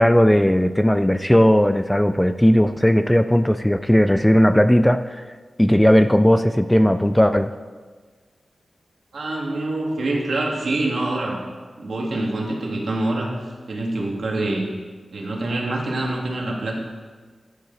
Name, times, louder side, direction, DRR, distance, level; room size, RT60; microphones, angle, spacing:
voice 1, 0.0-5.2 5.6-7.5, equal, 5° left, 10 dB, 0.3 m, -17 dB
voice 2, 9.1-11.4 11.8-13.4 13.7-14.7 15.1-16.8, right 2 dB, 70° right, -1 dB, 2.2 m, -25 dB
13.0 x 9.4 x 4.0 m, 1.5 s
wide cardioid pair, 135°, 0 cm